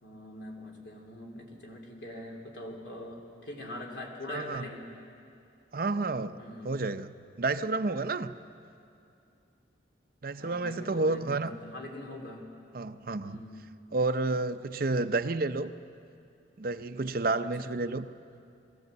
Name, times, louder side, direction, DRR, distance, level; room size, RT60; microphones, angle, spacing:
voice 1, 0.0-4.9 6.4-6.9 10.4-12.5 13.2-13.7 17.4-17.5, left 1 dB, 75° left, 0 dB, 3.0 m, -43 dB
voice 2, 4.3-4.7 5.7-6.4 6.6-7.1 7.4-8.3 10.2-11.5 12.7-13.4 13.9-15.7 16.6-18.1, right 3 dB, 50° right, 9 dB, 0.6 m, -30 dB
22.0 x 16.0 x 8.0 m, 2.6 s
head